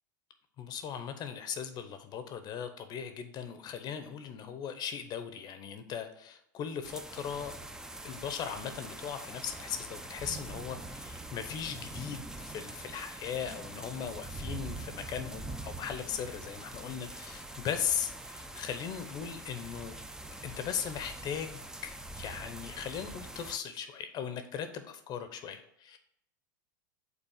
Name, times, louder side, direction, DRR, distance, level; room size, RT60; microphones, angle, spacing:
voice 1, 0.6-7.6 8.0-20.0 20.4-26.0, left 8 dB, 40° left, 9 dB, 0.7 m, -38 dB
sound 1, 6.8-23.6, right 2 dB, 5° right, 0.5 m, -44 dB
5.6 x 4.0 x 5.6 m, 0.75 s
hypercardioid pair, 105°, 11 cm